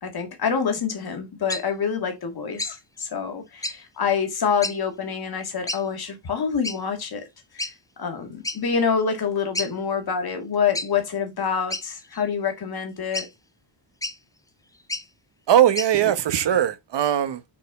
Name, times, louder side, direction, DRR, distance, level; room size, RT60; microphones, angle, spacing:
voice 1, 0.0-7.3 7.5-7.7 8.0-13.3, left 6 dB, 55° left, 1.9 m, -26 dB
sound 1, 1.5-1.6 2.6-2.8 3.6-3.8 4.6-4.8 5.7-5.8 6.6-6.8 7.6-7.7 8.4-8.6 9.0-9.1 9.5-9.7 10.7-10.9 11.7-12.2 13.1-13.3 14.0-14.2 14.8-15.1 15.7-15.9, left 2 dB, 10° left, 0.4 m, -30 dB
voice 2, 15.5-17.6, right 10 dB, 65° right, 0.9 m, -20 dB
6.2 x 4.3 x 4.0 m
wide cardioid pair, 145°, 45 cm